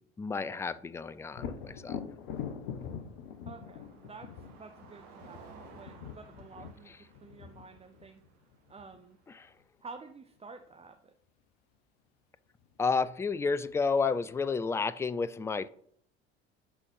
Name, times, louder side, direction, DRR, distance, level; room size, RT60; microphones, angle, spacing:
voice 1, 0.0-2.0 9.3-9.5 12.8-15.7, left 4 dB, 10° left, 0.3 m, -31 dB
Thunder, 1.3-9.0 12.6-12.7 13.2-14.1, left 7 dB, 65° left, 1.1 m, -43 dB
Car passing by, 1.5-9.6, right 5 dB, 55° right, 1.6 m, -57 dB
voice 2, 3.5-8.2 8.7-9.2 9.8-11.1, right 4 dB, 20° right, 0.8 m, -50 dB
11.0 x 4.1 x 5.5 m
figure-of-eight pair, 65°, 33 cm